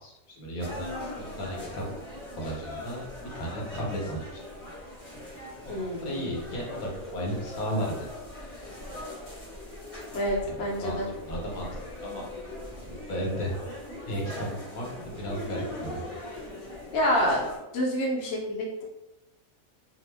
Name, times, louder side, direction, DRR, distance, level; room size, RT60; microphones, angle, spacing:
voice 1, 0.0-1.8 2.4-4.4 5.8-8.1 10.4-10.5 10.8-11.7 12.0-12.3 12.8-13.5 14.0-16.0, equal, 75° left, -2 dB, 1.2 m, -34 dB
sound 1, 0.6-17.6, left 1 dB, 25° left, 0.8 m, -41 dB
voice 2, 5.7-6.2 10.1-11.1 16.9-17.4 17.7-18.8, equal, 60° left, -2 dB, 0.8 m, -27 dB
2.7 x 2.0 x 3.2 m, 0.95 s
omnidirectional pair, 1.5 m